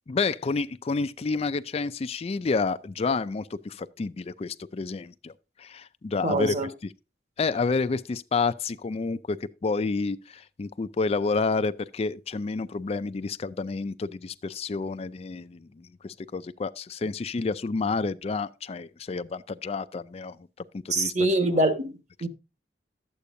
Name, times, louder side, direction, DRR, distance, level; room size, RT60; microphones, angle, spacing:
voice 1, 0.1-5.3 5.6-6.6 6.8-6.9 7.4-9.4 9.6-20.4 20.7-21.1 22.2-22.3, left 4 dB, 35° left, 0.4 m, -29 dB
voice 2, 6.2-6.7 20.9-22.3, right 1 dB, 40° right, 1.4 m, -25 dB
12.5 x 8.3 x 2.6 m
head